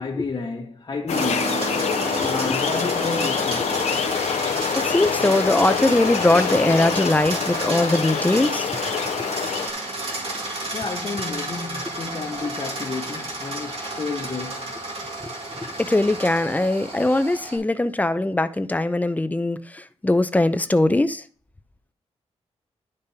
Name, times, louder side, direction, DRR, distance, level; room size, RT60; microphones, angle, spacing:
voice 1, 0.0-1.7 2.2-3.8 10.7-14.7, left 4 dB, 40° left, 1.0 m, -31 dB
sound 1, 1.1-9.7, left 7 dB, 80° left, 0.6 m, -26 dB
sound 2, 1.1-17.6, right 2 dB, 60° right, 2.2 m, -31 dB
voice 2, 2.2-2.6 4.7-8.7 15.2-15.3 15.6-21.2, left 2 dB, 15° left, 0.5 m, -21 dB
11.5 x 5.2 x 2.7 m
wide cardioid pair, 115°, 11 cm